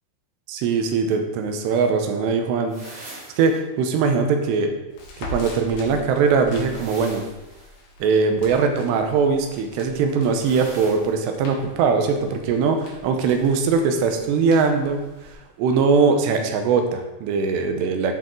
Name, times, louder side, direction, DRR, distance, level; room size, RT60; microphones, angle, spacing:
voice 1, 0.5-4.7 5.2-7.2 8.0-18.1, right 5 dB, 85° right, 5 dB, 3.0 m, -21 dB
sound 1, 2.7-3.6 6.5-7.8 10.3-11.2, right 1 dB, 35° right, 1.3 m, -42 dB
Crackle, 4.9-15.3, left 1 dB, 65° left, 3.5 m, -42 dB
10.5 x 4.7 x 3.7 m, 1.0 s
omnidirectional pair, 4.8 m